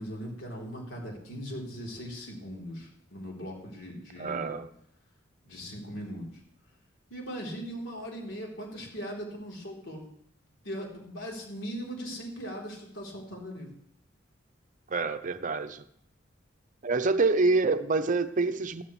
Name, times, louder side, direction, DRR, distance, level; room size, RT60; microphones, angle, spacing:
voice 1, 0.0-4.6 5.4-6.3 7.1-10.0 10.6-13.7, equal, 70° left, -1 dB, 3.5 m, -39 dB
voice 2, 4.2-4.7 14.9-15.8 16.8-18.8, right 3 dB, 40° right, 9 dB, 0.6 m, -26 dB
14.0 x 13.0 x 3.2 m, 0.72 s
head